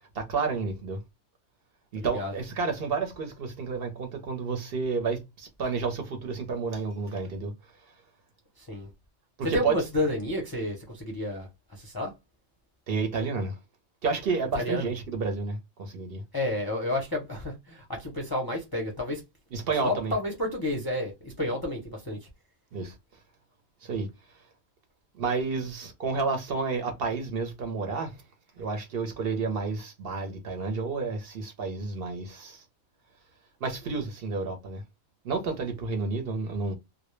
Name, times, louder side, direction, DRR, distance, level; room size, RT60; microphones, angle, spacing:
voice 1, 0.1-1.0 1.9-7.5 9.5-9.7 12.9-13.6 14.0-16.2 19.5-20.1 22.7-22.9 23.8-24.1 25.2-28.2 28.6-32.6 33.6-34.8 35.2-36.7, right 4 dB, 60° right, 0.8 m, -30 dB
voice 2, 2.0-2.3 8.6-8.9 9.4-12.1 14.5-14.9 16.3-19.2 19.8-22.3, left 1 dB, 30° left, 0.5 m, -31 dB
2.2 x 2.0 x 3.0 m
omnidirectional pair, 1.2 m